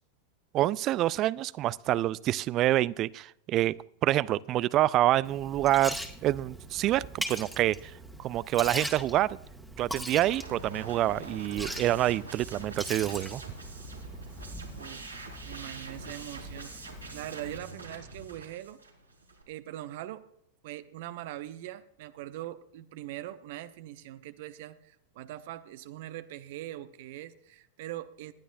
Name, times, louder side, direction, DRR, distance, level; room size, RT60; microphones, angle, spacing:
voice 1, 0.5-3.8 4.0-6.0 6.2-7.9 8.2-9.4 9.8-13.4, right 14 dB, 35° right, 22 dB, 0.4 m, -27 dB
Liquid, 5.2-17.6, right 1 dB, ahead, 1.7 m, -41 dB
sound 1, 10.2-19.4, right 2 dB, 85° right, 3.1 m, -45 dB
voice 2, 15.4-18.8 19.5-20.2 20.6-28.3, right 14 dB, 50° right, 13 dB, 0.7 m, -42 dB
19.0 x 11.5 x 2.6 m, 0.76 s
figure-of-eight pair, 90°, 0 cm